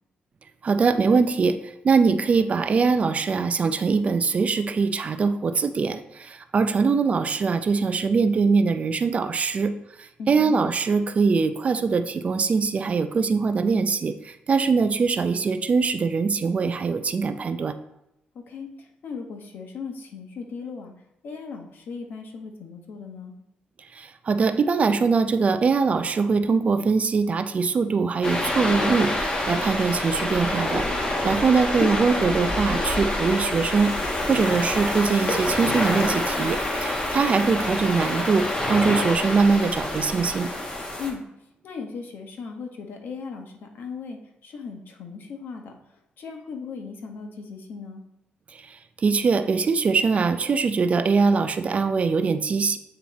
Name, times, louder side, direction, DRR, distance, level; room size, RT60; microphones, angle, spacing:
voice 1, 0.6-1.6 1.8-9.7 10.3-17.7 24.0-30.9 31.2-33.9 34.3-40.5 49.0-52.8, right 4 dB, 40° right, 10 dB, 0.4 m, -22 dB
voice 2, 10.2-10.6 18.5-20.9 21.2-23.3 37.1-37.5 41.0-41.2 41.6-45.8 46.2-48.0, left 5 dB, 70° left, 3 dB, 1.0 m, -37 dB
sound 1, 28.2-41.1, left 1 dB, 25° left, 1.2 m, -27 dB
8.7 x 3.0 x 4.1 m, 0.85 s
cardioid pair, 110°, 3 cm